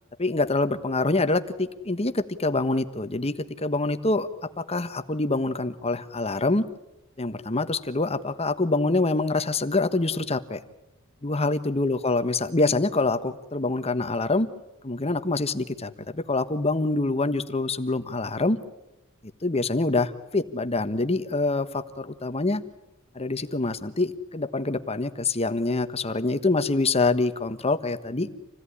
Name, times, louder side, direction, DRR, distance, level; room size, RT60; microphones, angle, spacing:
voice 1, 0.2-6.6 7.2-10.6 11.2-14.5 14.8-18.6 19.4-22.6 23.1-28.3, left 2 dB, 30° left, 10 dB, 1.3 m, -25 dB
28.0 x 17.5 x 9.9 m, 0.91 s
head